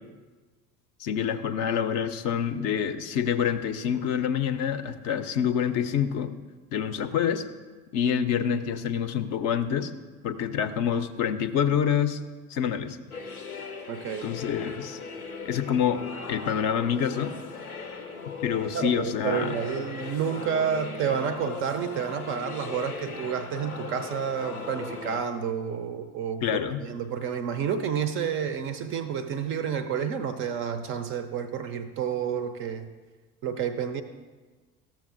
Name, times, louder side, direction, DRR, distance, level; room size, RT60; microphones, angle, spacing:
voice 1, 1.0-6.3 6.7-7.4 7.9-9.9 10.2-12.2 12.5-13.0 14.2-15.0 15.4-16.0 16.3-17.3 18.4-19.5 26.4-26.8, left 8 dB, 40° left, 9 dB, 0.5 m, -27 dB
sound 1, 13.1-25.2, left 4 dB, 90° left, 0.7 m, -38 dB
voice 2, 13.9-14.3 18.7-32.9 33.4-34.0, right 7 dB, 30° right, 10 dB, 0.4 m, -30 dB
13.5 x 7.1 x 2.5 m, 1.3 s
figure-of-eight pair, 65°, 43 cm